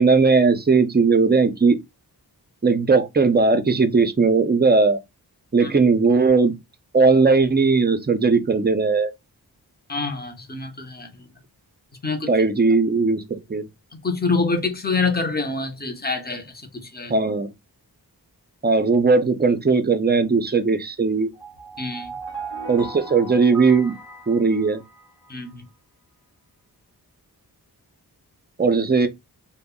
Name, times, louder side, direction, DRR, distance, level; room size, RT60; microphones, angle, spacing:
voice 1, 0.0-1.8 2.6-5.0 5.5-6.6 6.9-9.1 12.3-13.7 17.1-17.5 18.6-21.3 22.7-23.9 24.3-24.8 28.6-29.1, right 4 dB, 25° right, 0.4 m, -18 dB
voice 2, 9.9-11.1 12.0-12.3 14.0-16.5 16.7-17.1 21.8-22.1 25.3-25.6, left 4 dB, 25° left, 0.6 m, -26 dB
sound 1, 21.3-25.3, right 3 dB, 55° left, 1.0 m, -37 dB
2.1 x 2.0 x 3.5 m
wide cardioid pair, 80°, 39 cm